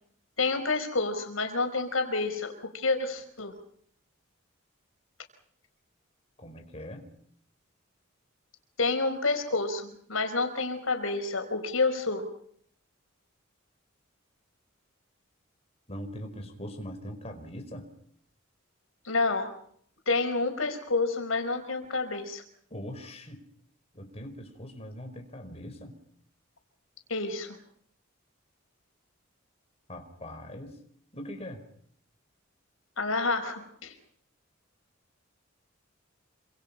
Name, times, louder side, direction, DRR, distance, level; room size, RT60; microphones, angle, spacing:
voice 1, 0.4-3.5 8.8-12.3 19.1-19.6 20.1-22.4 27.1-27.6 33.0-33.9, left 3 dB, 80° left, 6 dB, 5.2 m, -29 dB
voice 2, 6.4-7.1 15.9-17.9 22.7-23.4 23.9-26.0 29.9-30.8 31.1-31.6, equal, 30° left, 4 dB, 4.9 m, -41 dB
27.5 x 27.0 x 5.6 m, 0.64 s
head